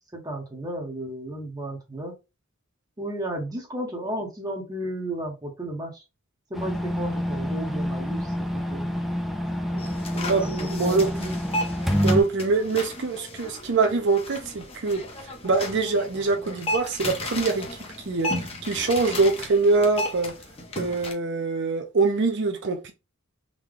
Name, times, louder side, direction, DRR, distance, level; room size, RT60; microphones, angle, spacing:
voice 1, 0.1-2.1 3.0-6.0 6.5-8.9 10.1-11.1, right 1 dB, 20° right, 0.9 m, -34 dB
sound 1, 6.5-12.2, equal, ahead, 0.4 m, -27 dB
sound 2, 9.8-21.1, left 1 dB, 25° left, 0.8 m, -34 dB
voice 2, 10.1-11.4 12.0-17.8 18.1-20.3 20.8-22.9, right 3 dB, 55° right, 0.6 m, -24 dB
3.8 x 2.2 x 3.2 m
head